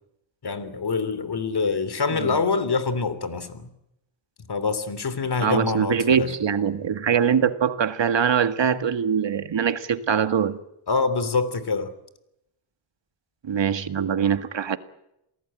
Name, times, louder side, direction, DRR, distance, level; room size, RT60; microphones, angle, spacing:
voice 1, 0.4-3.7 4.5-6.3 10.9-11.9, left 4 dB, 50° left, 3.2 m, -25 dB
voice 2, 5.4-10.6 13.4-14.8, right 7 dB, 60° right, 1.8 m, -23 dB
28.0 x 18.5 x 9.0 m
cardioid pair, 90°, 49 cm